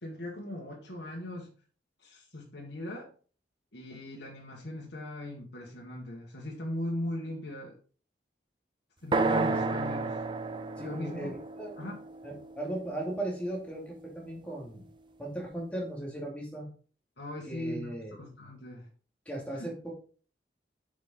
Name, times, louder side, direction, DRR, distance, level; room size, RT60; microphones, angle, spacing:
voice 1, 0.0-1.5 2.0-3.1 3.7-7.8 9.0-10.2 10.8-11.3 11.8-11.9 17.2-18.9 19.5-19.7, left 1 dB, 70° left, -3 dB, 1.7 m, -39 dB
sound 1, 9.1-13.0, right 3 dB, 25° right, 0.5 m, -31 dB
voice 2, 10.8-11.9 12.2-14.9 15.2-16.7 17.5-18.1 19.3-19.9, right 1 dB, 5° left, -2 dB, 2.5 m, -37 dB
8.2 x 5.3 x 3.8 m, 0.40 s
head